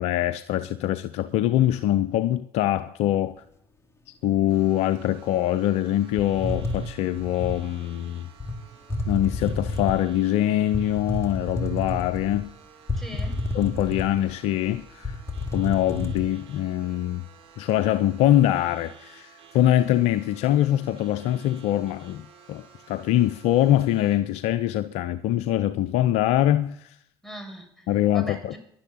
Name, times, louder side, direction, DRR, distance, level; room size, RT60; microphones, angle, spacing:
voice 1, 0.0-3.4 4.2-8.3 9.1-12.5 13.5-15.2 15.5-17.2 17.6-27.0 27.9-28.5, left 12 dB, 55° left, 0.7 m, -23 dB
sound 1, 4.5-24.2, right 7 dB, 50° right, 3.9 m, -52 dB
sound 2, 6.2-7.6 8.4-8.6 8.9-10.1 10.7-12.4 12.9-14.3 14.7-14.8 15.0-16.2, left 2 dB, 20° left, 2.7 m, -30 dB
voice 2, 13.0-13.4 27.2-28.6, equal, ahead, 6.4 m, -40 dB
13.5 x 11.0 x 9.0 m
figure-of-eight pair, 55°, 13 cm